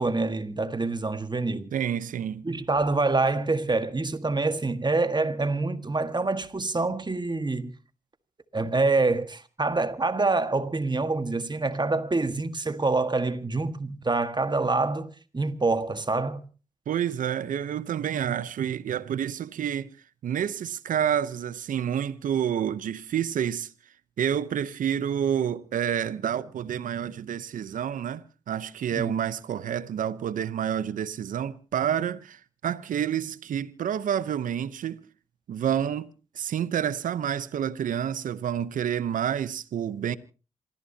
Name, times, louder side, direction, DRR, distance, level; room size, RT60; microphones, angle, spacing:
voice 1, 0.0-1.7 2.4-7.7 8.5-16.5 28.9-29.1, right 3 dB, 35° right, 1.6 m, -26 dB
voice 2, 1.7-2.4 16.9-19.9 20.2-23.7 24.2-35.1 35.5-36.1 36.3-40.2, right 9 dB, 85° right, 0.8 m, -29 dB
27.5 x 15.0 x 2.8 m
supercardioid pair, 45°, 13 cm